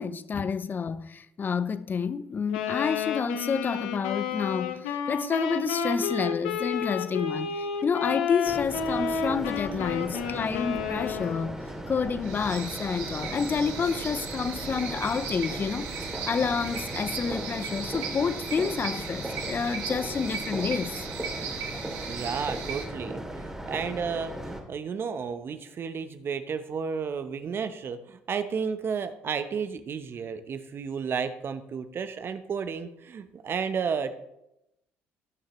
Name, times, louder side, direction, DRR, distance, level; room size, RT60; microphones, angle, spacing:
voice 1, 0.0-21.1 22.0-22.1, left 5 dB, 35° left, 0.6 m, -29 dB
Wind instrument woodwind instrument, 2.5-11.6, left 6 dB, 85° left, 0.9 m, -31 dB
sound 1, 8.4-24.6, right 1 dB, 10° right, 2.4 m, -38 dB
sound 2, 12.2-22.8, right 6 dB, 75° right, 1.8 m, -37 dB
voice 2, 22.0-34.1, right 6 dB, 45° right, 0.8 m, -32 dB
17.5 x 6.4 x 3.1 m
hypercardioid pair, 65°, 5 cm